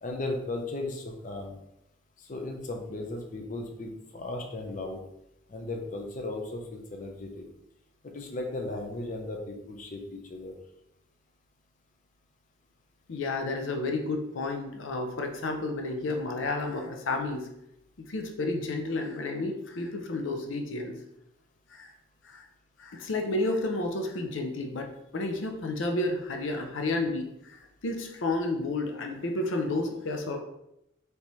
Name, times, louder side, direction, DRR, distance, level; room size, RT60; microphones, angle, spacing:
voice 1, 0.0-1.6 2.3-5.0 5.5-7.5 8.1-10.5, left 2 dB, 40° left, 2 dB, 0.6 m, -36 dB
voice 2, 13.1-17.5 18.0-21.0 21.7-21.9 22.2-22.5 22.8-30.4, left 2 dB, 85° left, 4 dB, 0.6 m, -31 dB
4.1 x 3.3 x 3.0 m, 0.82 s
head